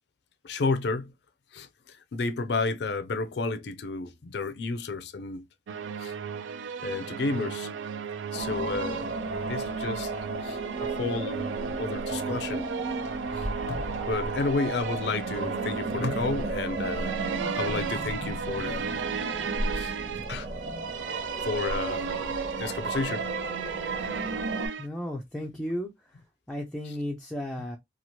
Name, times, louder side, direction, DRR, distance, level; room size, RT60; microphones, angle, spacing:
voice 1, 0.4-1.1 1.5-5.4 6.0-6.1 6.8-7.7 8.3-9.1 9.5-10.1 10.4-11.5 11.8-12.7 13.3-17.2 17.6-19.0 19.7-19.9 20.3-20.5 21.4-23.3, left 3 dB, 65° left, 0.4 m, -31 dB
sound 1, 5.7-24.9, right 7 dB, 85° right, 0.4 m, -35 dB
sound 2, 8.3-24.7, right 2 dB, 65° right, 0.9 m, -34 dB
voice 2, 24.8-26.2 26.5-27.8, equal, 5° left, 0.4 m, -34 dB
2.9 x 2.4 x 2.7 m
head